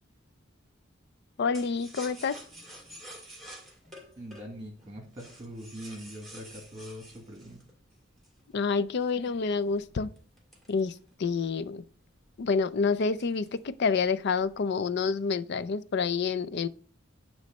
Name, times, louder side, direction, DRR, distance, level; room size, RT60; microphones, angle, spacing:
voice 1, 1.4-2.4 8.5-10.1 10.7-10.9 11.2-11.8 12.4-16.7, left 5 dB, 55° left, 0.4 m, -28 dB
sound 1, 1.5-8.5 9.0-11.4 11.8-11.9 12.2-12.6 13.0-13.7 14.0-14.6, equal, ahead, 1.9 m, -49 dB
voice 2, 4.2-7.6, equal, 20° right, 1.8 m, -43 dB
9.3 x 3.2 x 5.3 m
head